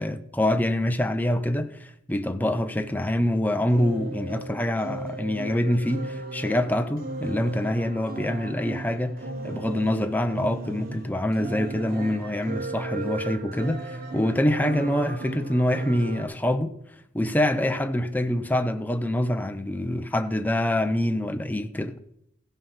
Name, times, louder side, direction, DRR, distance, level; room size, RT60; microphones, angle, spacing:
voice 1, 0.0-9.2 9.4-16.7 17.1-22.0, left 1 dB, 10° left, 0.6 m, -25 dB
sound 1, 3.7-16.3, right 2 dB, 50° right, 1.0 m, -36 dB
15.5 x 5.5 x 5.6 m
head